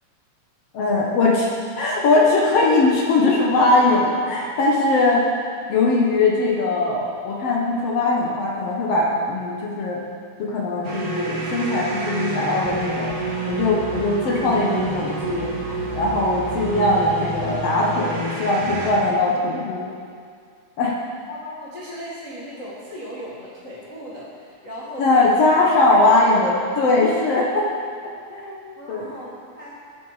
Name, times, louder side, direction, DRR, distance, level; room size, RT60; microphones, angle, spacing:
voice 1, 0.7-5.2 5.7-10.0 10.4-13.1 13.5-19.9 20.8-21.0 25.0-27.7 28.0-28.6 28.9-29.1, left 2 dB, 85° left, -3 dB, 1.3 m, -20 dB
sound 1, 10.8-18.9, right 3 dB, 30° right, 2.5 m, -28 dB
voice 2, 21.3-25.3 25.8-26.2 28.8-29.8, equal, 35° left, -9 dB, 1.4 m, -37 dB
19.0 x 7.8 x 5.0 m, 2.1 s
omnidirectional pair, 4.8 m